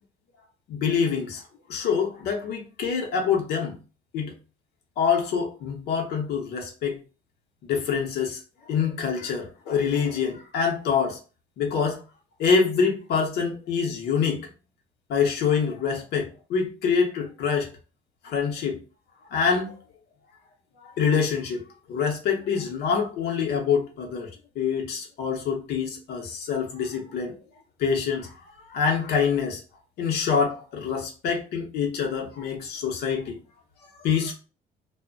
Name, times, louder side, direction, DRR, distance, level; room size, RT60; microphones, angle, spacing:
voice 1, 0.7-1.4 1.7-3.8 4.1-4.3 5.0-7.0 7.6-8.4 8.7-11.2 11.6-12.0 12.4-14.5 15.1-17.7 18.2-18.8 19.3-19.7 20.8-24.3 24.6-27.3 27.8-28.3 28.7-29.6 30.0-33.4 34.0-34.3, left 6 dB, 75° left, 0.8 m, -25 dB
2.6 x 2.1 x 2.5 m
cardioid pair, 110°, 17 cm